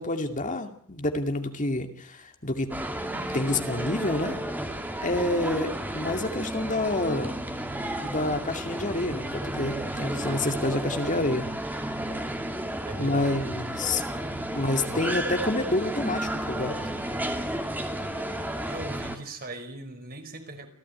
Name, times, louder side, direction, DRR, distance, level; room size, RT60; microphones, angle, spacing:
voice 1, 0.0-2.7 3.1-4.4 5.0-7.3 8.0-11.5 13.0-14.0 14.5-16.8, left 2 dB, 35° left, 6 dB, 2.4 m, -28 dB
sound 1, 2.7-19.2, right 1 dB, 10° right, 2.7 m, -32 dB
voice 2, 12.8-13.5 14.9-15.3 18.6-20.7, right 2 dB, 45° right, 6 dB, 4.9 m, -39 dB
28.0 x 16.5 x 9.6 m, 0.63 s
head